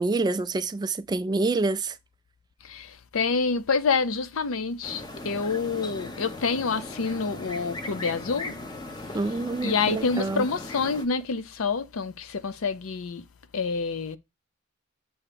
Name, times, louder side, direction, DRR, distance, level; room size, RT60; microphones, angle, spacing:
voice 1, 0.0-2.0 9.1-10.4, right 3 dB, 20° right, 0.3 m, -27 dB
voice 2, 2.6-8.6 9.6-13.2 13.5-14.2, left 5 dB, 80° left, 0.6 m, -27 dB
sound 1, 4.8-11.1, left 2 dB, 20° left, 0.8 m, -38 dB
7.0 x 2.8 x 5.0 m
head